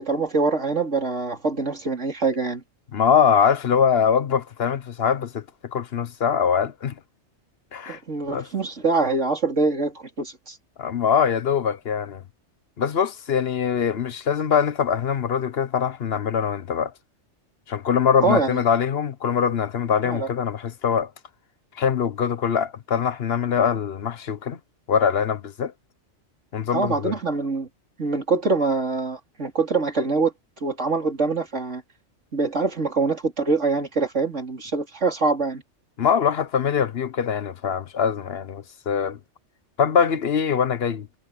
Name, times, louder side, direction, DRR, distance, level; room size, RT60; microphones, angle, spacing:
voice 1, 0.0-2.6 7.9-10.6 18.2-18.6 20.0-20.3 26.7-27.7 28.0-30.3 30.6-31.8 32.3-35.6, right 3 dB, 85° right, 4.0 m, -24 dB
voice 2, 2.9-5.4 5.7-6.9 7.7-8.0 8.3-8.5 10.8-12.2 12.8-16.9 17.7-21.1 21.8-24.6 24.9-25.7 26.5-27.2 36.0-39.2 39.8-41.1, left 7 dB, 60° left, 1.1 m, -23 dB
omnidirectional pair, 1.2 m